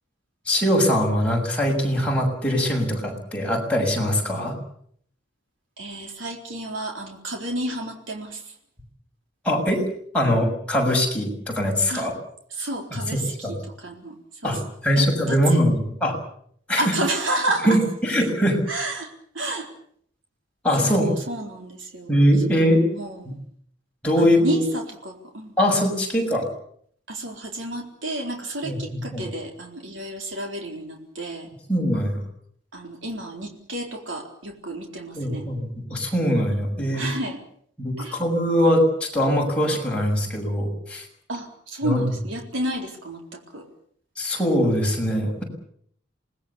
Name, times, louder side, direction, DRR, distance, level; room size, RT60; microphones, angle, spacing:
voice 1, 0.5-4.6 9.4-9.8 10.1-12.1 12.9-13.5 14.4-14.6 14.8-16.2 16.7-16.8 17.7-18.6 20.6-21.1 22.1-22.8 23.2-23.3 24.0-24.6 25.6-26.5 28.6-29.2 31.7-32.2 35.1-37.0 37.8-41.0 41.8-42.1 44.2-45.4, equal, 5° left, -1 dB, 6.8 m, -22 dB
voice 2, 5.8-8.5 11.9-12.1 12.5-14.7 15.0-15.6 16.8-17.8 18.7-19.7 20.8-22.2 22.5-23.4 24.2-25.5 27.1-31.5 32.7-35.5 36.9-37.4 38.0-38.2 41.3-43.7, right 1 dB, 85° right, 2 dB, 4.0 m, -31 dB
27.5 x 19.5 x 7.1 m, 0.63 s
head